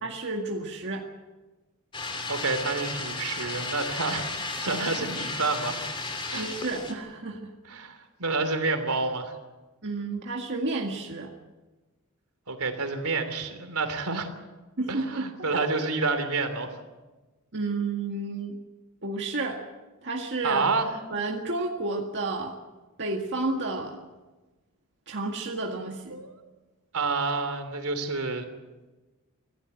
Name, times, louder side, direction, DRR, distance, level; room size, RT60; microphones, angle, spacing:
voice 1, 0.0-1.1 6.3-7.5 9.8-11.3 14.8-15.7 17.5-18.6 19.0-19.6 20.0-20.7 21.1-22.5 23.0-24.0 25.1-26.2, right 3 dB, 55° right, 0 dB, 1.9 m, -31 dB
sound 1, 1.9-6.9, left 3 dB, 25° left, 2.8 m, -34 dB
voice 2, 2.3-4.2 4.6-5.8 6.3-6.5 7.7-9.3 12.5-14.3 14.9-16.7 20.4-20.9 26.1-26.3 26.9-28.4, right 3 dB, 80° right, 7 dB, 3.1 m, -28 dB
25.5 x 15.5 x 7.9 m, 1.2 s
head